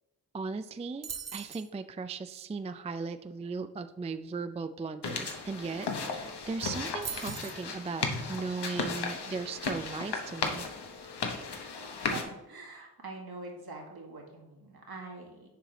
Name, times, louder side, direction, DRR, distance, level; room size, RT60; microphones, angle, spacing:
voice 1, 0.3-10.6, right 4 dB, 15° right, 10 dB, 0.3 m, -37 dB
sound 1, 1.0-1.7 5.6-5.7 6.0-6.3 7.0-7.6, right 7 dB, 40° right, 0.7 m, -40 dB
sound 2, 5.0-12.2, left 4 dB, 70° left, 1.0 m, -35 dB
voice 2, 12.1-15.5, right 3 dB, 65° right, -1 dB, 1.9 m, -44 dB
6.8 x 4.7 x 4.0 m, 1.0 s
cardioid pair, 45°, 41 cm